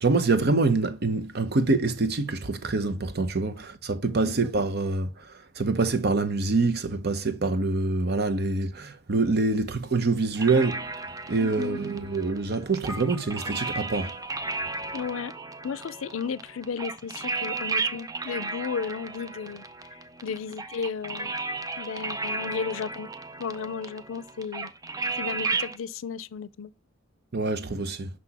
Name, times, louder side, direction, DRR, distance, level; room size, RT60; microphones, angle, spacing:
voice 1, 0.0-5.1 5.6-10.9 11.3-14.1 27.3-28.1, right 3 dB, 55° right, 0.8 m, -25 dB
sound 1, 10.4-25.8, right 3 dB, 20° right, 0.4 m, -34 dB
voice 2, 11.4-11.8 14.9-15.3 15.6-19.6 20.2-21.3 21.8-23.1 23.4-24.7 25.2-26.7, left 6 dB, 90° left, 0.4 m, -34 dB
sound 2, 12.9-17.4, equal, 10° left, 1.7 m, -49 dB
6.3 x 6.0 x 2.9 m
head